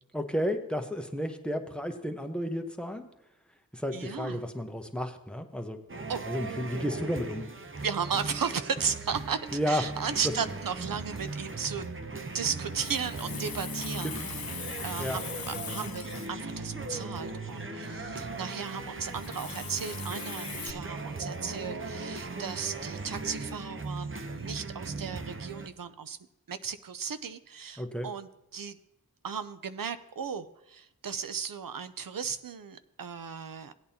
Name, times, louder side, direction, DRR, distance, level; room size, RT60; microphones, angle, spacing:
voice 1, 0.1-3.1 3.7-5.8 6.3-7.5 9.5-9.8 14.0-14.4 15.0-15.2 27.8-28.1, equal, 5° left, 4 dB, 1.0 m, -32 dB
voice 2, 3.9-4.4 6.1-6.2 7.8-11.9 12.3-26.2 26.5-28.8 29.2-33.7, right 6 dB, 70° right, 12 dB, 0.6 m, -35 dB
sound 1, 5.9-25.7, right 3 dB, 35° right, 0.8 m, -38 dB
Water tap faucet, 12.5-20.7, left 8 dB, 80° left, 0.6 m, -42 dB
16.5 x 8.6 x 2.9 m, 0.87 s
wide cardioid pair, 45°, 35 cm